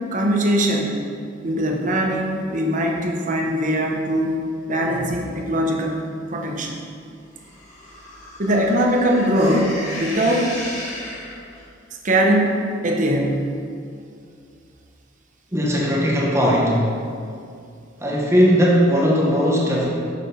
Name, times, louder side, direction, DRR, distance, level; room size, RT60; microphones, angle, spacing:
voice 1, 0.1-1.0 1.4-4.4 4.7-6.0 6.3-6.9 8.4-10.5 12.0-12.5 12.8-13.5, equal, 40° right, 1 dB, 0.9 m, -21 dB
sound 1, 7.4-11.7, left 1 dB, 40° left, 1.7 m, -34 dB
voice 2, 15.5-16.8 18.0-19.9, equal, 15° right, -4 dB, 1.0 m, -18 dB
6.7 x 6.1 x 5.2 m, 2.4 s
head